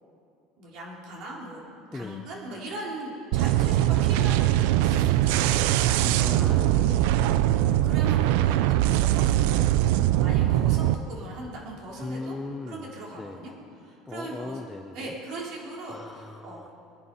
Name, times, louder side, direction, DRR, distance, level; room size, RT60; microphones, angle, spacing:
voice 1, 0.6-1.6 1.9-6.6 7.4-12.4 12.6-13.5 13.8-14.6 14.9-16.7, right 2 dB, 55° right, -3 dB, 4.0 m, -39 dB
voice 2, 1.9-2.3 6.2-7.4 12.0-13.4 14.1-15.1 15.9-16.7, left 2 dB, 10° left, 7 dB, 0.6 m, -38 dB
sound 1, 3.3-10.9, right 13 dB, 75° right, 0.5 m, -22 dB
23.5 x 9.7 x 5.6 m, 2.6 s
cardioid pair, 155°, 0 cm